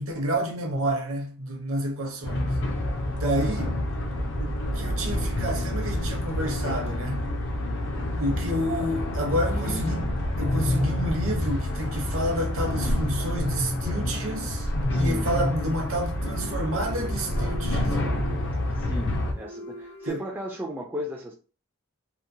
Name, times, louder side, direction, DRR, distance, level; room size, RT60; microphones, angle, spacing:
voice 1, 0.0-2.5 3.1-3.8 4.4-7.3 8.2-10.1 10.4-14.7 14.9-18.0 20.1-20.2, equal, 65° right, 0.7 m, -29 dB
sound 1, 2.2-19.3, left 1 dB, 55° left, 0.5 m, -28 dB
voice 2, 9.5-9.9 14.9-15.3 18.7-21.4, equal, 10° right, 0.3 m, -36 dB
sound 2, 12.9-13.0 14.9-15.5 16.1-20.1, equal, 75° left, 1.1 m, -44 dB
2.8 x 2.0 x 2.6 m
head